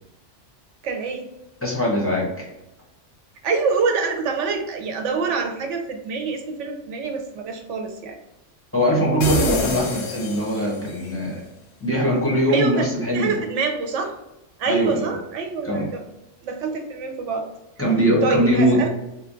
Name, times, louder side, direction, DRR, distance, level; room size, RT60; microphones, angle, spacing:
voice 1, 0.8-1.3 3.4-8.2 12.5-12.9 13.1-14.1 14.6-16.0 16.4-17.5 18.2-18.9, right 5 dB, 75° right, 4 dB, 1.0 m, -25 dB
voice 2, 1.6-2.5 8.7-11.4 11.8-13.4 14.6-15.1 15.6-15.9 17.8-18.9, equal, 15° left, -4 dB, 0.7 m, -21 dB
sound 1, 9.2-11.0, left 3 dB, 80° left, 1.0 m, -26 dB
3.5 x 2.3 x 3.7 m, 0.90 s
omnidirectional pair, 1.3 m